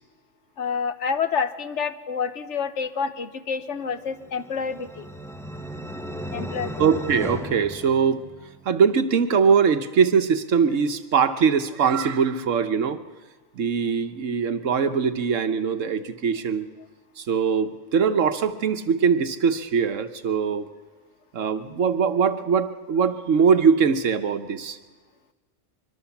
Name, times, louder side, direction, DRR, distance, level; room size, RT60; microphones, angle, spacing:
voice 1, 0.6-5.1 6.3-6.8, left 6 dB, 70° left, 11 dB, 1.3 m, -28 dB
sound 1, 4.1-8.6, equal, 5° left, 0.9 m, -36 dB
voice 2, 6.8-8.2 8.6-13.0 13.6-16.7 17.2-20.7 21.3-24.8, right 6 dB, 85° right, 10 dB, 1.4 m, -22 dB
24.5 x 22.5 x 7.1 m, 1.4 s
omnidirectional pair, 1.3 m